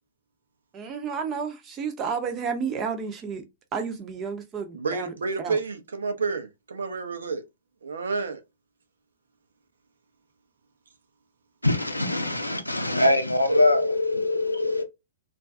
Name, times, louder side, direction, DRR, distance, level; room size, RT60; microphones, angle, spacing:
voice 1, 0.7-3.4 3.7-5.6, right 6 dB, 25° right, 0.6 m, -31 dB
voice 2, 4.7-7.4 7.8-8.4, right 4 dB, 70° right, 0.6 m, -30 dB
voice 3, 11.6-14.8, left 2 dB, 90° left, 0.5 m, -23 dB
2.4 x 2.2 x 2.5 m
figure-of-eight pair, 110°, 0 cm